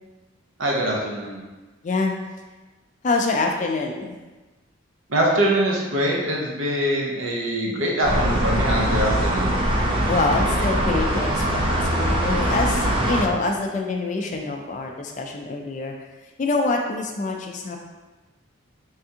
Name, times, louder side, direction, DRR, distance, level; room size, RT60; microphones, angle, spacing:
voice 1, 0.6-1.4 5.1-9.5, right 1 dB, 70° right, -2 dB, 0.8 m, -23 dB
voice 2, 3.0-4.1 10.1-15.9 16.4-17.8, left 3 dB, 35° left, 2 dB, 0.3 m, -25 dB
sound 1, 8.0-13.2, right 1 dB, 25° right, 0.5 m, -22 dB
3.5 x 3.4 x 2.8 m, 1.2 s
head